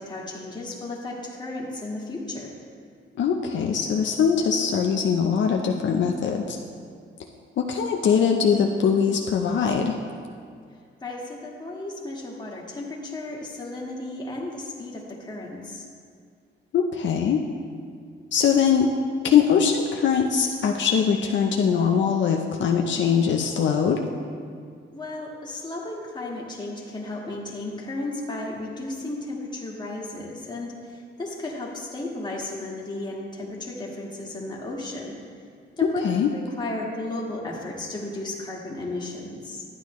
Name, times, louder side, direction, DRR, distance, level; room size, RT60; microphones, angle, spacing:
voice 1, 0.0-2.5 11.0-15.8 24.9-35.1 35.7-36.1 36.3-39.6, left 2 dB, 20° left, -3 dB, 1.6 m, -34 dB
voice 2, 3.2-6.6 7.6-10.0 16.7-17.4 18.3-18.9 19.2-24.0 35.8-36.3, left 7 dB, 65° left, 2 dB, 0.6 m, -22 dB
12.0 x 9.6 x 3.1 m, 2.2 s
cardioid pair, 130°, 20 cm